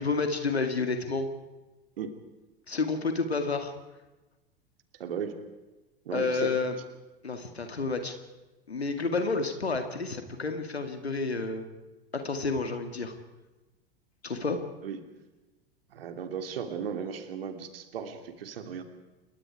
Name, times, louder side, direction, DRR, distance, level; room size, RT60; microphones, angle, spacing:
voice 1, 0.0-1.3 2.7-3.7 6.1-6.8 7.2-8.1 8.7-11.6 12.1-13.1 14.2-14.6, left 4 dB, 85° left, 7 dB, 2.2 m, -30 dB
voice 2, 5.0-5.4 6.0-6.5 14.8-15.0 15.9-18.8, right 7 dB, 65° right, 7 dB, 3.0 m, -36 dB
28.5 x 23.0 x 4.9 m, 1.1 s
figure-of-eight pair, 85°, 31 cm